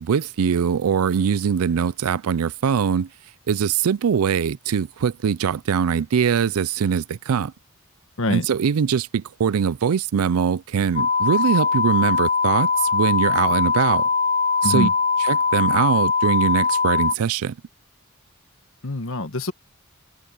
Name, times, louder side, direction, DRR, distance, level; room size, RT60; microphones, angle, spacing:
voice 1, 0.0-3.1 3.5-7.5 8.3-14.1 14.6-14.9 15.2-17.6, right 7 dB, 80° right, 0.4 m, -22 dB
sound 1, 11.0-17.2, left 5 dB, 35° left, 0.5 m, -21 dB
voice 2, 18.8-19.5, left 2 dB, 65° left, 1.4 m, -24 dB
head